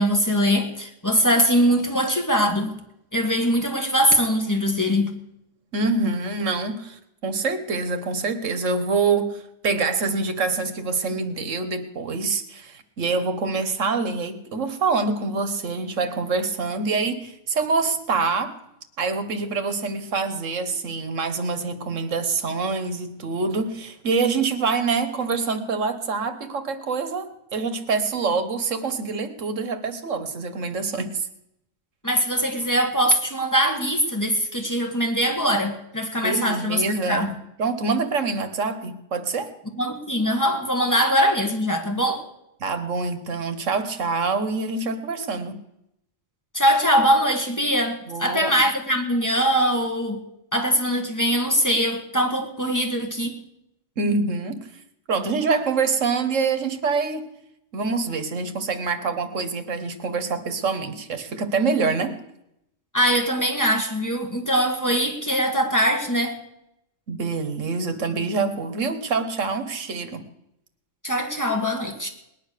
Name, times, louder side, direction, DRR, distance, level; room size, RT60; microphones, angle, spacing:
voice 1, 0.0-2.8 3.1-5.2 32.0-37.3 39.8-42.3 46.5-50.2 50.5-53.4 62.9-66.4 71.0-72.1, equal, 15° left, 3 dB, 2.0 m, -22 dB
voice 2, 5.7-18.6 19.0-31.3 36.2-37.3 37.6-39.5 42.6-45.6 48.1-48.6 54.0-54.7 55.1-57.3 57.7-62.2 67.1-70.2, right 4 dB, 85° right, 9 dB, 1.7 m, -25 dB
19.5 x 10.5 x 6.7 m, 0.81 s
omnidirectional pair, 1.3 m